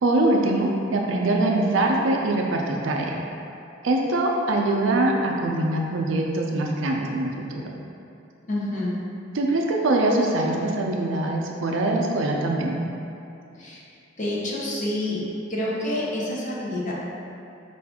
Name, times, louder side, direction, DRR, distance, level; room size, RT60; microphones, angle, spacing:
voice 1, 0.0-3.2 3.8-7.7 9.3-12.8, right 2 dB, 90° right, 0 dB, 0.5 m, -23 dB
voice 2, 8.5-9.0 13.6-13.8 14.2-15.2 15.5-16.9, left 1 dB, 40° left, -5 dB, 0.7 m, -28 dB
4.7 x 2.5 x 3.5 m, 2.7 s
head